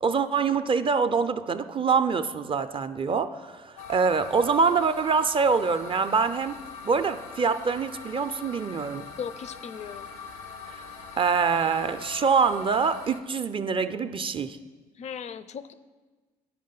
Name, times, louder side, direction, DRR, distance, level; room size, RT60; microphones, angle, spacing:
voice 1, 0.0-6.6 6.8-9.1 10.7-10.8 11.2-14.6, right 5 dB, 30° right, 11 dB, 0.4 m, -25 dB
sound 1, 3.8-13.2, left 5 dB, 75° left, 0.7 m, -42 dB
voice 2, 9.2-10.1 15.0-15.7, left 7 dB, 35° left, 15 dB, 0.4 m, -37 dB
10.5 x 5.1 x 3.8 m, 1.3 s
figure-of-eight pair, 50°, 19 cm